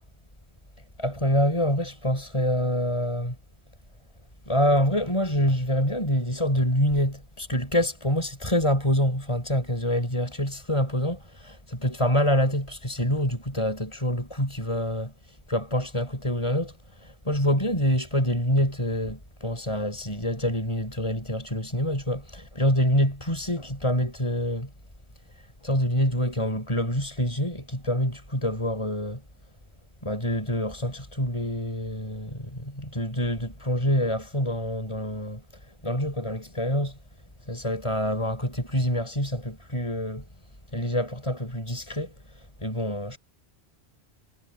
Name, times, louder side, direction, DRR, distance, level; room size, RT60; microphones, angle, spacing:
voice 1, 1.0-3.3 4.5-11.2 11.7-15.1 15.5-24.7 25.6-29.2 30.0-35.4 35.8-37.0 37.5-40.2 40.7-42.1 42.6-43.2, equal, 30° left, 6.2 m, -26 dB
omnidirectional pair, 1.1 m